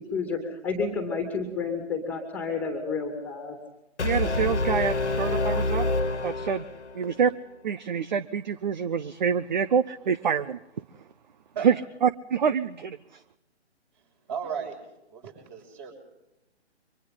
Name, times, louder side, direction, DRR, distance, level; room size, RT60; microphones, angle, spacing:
voice 1, 0.0-3.6, left 4 dB, 5° left, 4 dB, 2.5 m, -30 dB
Brass instrument, 4.0-7.1, left 2 dB, 80° left, 1.7 m, -27 dB
voice 2, 4.0-5.9 6.2-6.6 6.9-7.3 7.6-10.6 11.6-11.8 12.0-13.2, right 7 dB, 40° right, 14 dB, 0.8 m, -26 dB
voice 3, 14.3-14.8 15.1-15.9, right 7 dB, 25° right, 3 dB, 6.5 m, -34 dB
29.5 x 24.5 x 3.8 m, 0.91 s
figure-of-eight pair, 140°, 34 cm